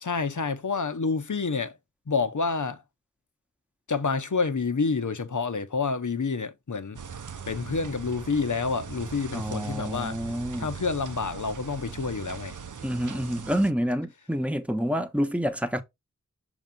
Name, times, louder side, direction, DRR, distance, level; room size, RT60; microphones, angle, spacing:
voice 1, 0.0-1.8 2.1-2.8 3.9-7.0 7.5-10.2 10.6-12.5, left 4 dB, 70° left, 1.0 m, -28 dB
sound 1, 6.9-13.7, right 6 dB, 70° right, 0.7 m, -40 dB
voice 2, 9.3-10.7 12.8-15.8, equal, 5° right, 1.0 m, -28 dB
6.5 x 3.0 x 5.2 m
wide cardioid pair, 45°, 32 cm